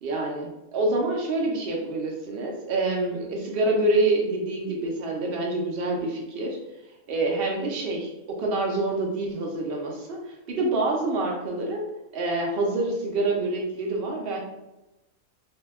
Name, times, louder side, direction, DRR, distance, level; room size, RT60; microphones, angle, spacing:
voice 1, 0.0-6.6 7.1-11.8 12.1-14.4, right 2 dB, 65° right, 0 dB, 0.6 m, -27 dB
2.7 x 2.1 x 3.4 m, 0.98 s
omnidirectional pair, 1.5 m